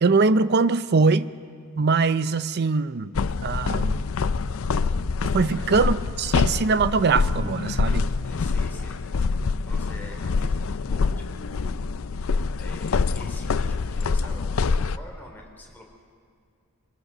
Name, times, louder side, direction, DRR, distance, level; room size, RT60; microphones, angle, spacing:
voice 1, 0.0-1.3 1.8-3.1 3.4-4.0 5.3-8.0, right 4 dB, 50° right, 14 dB, 0.5 m, -22 dB
sound 1, 3.1-15.0, left 4 dB, 65° left, 0.5 m, -25 dB
voice 2, 7.6-9.0 9.6-11.8 12.6-15.8, left 1 dB, 10° left, -2 dB, 3.5 m, -46 dB
24.5 x 19.0 x 6.7 m, 2.1 s
head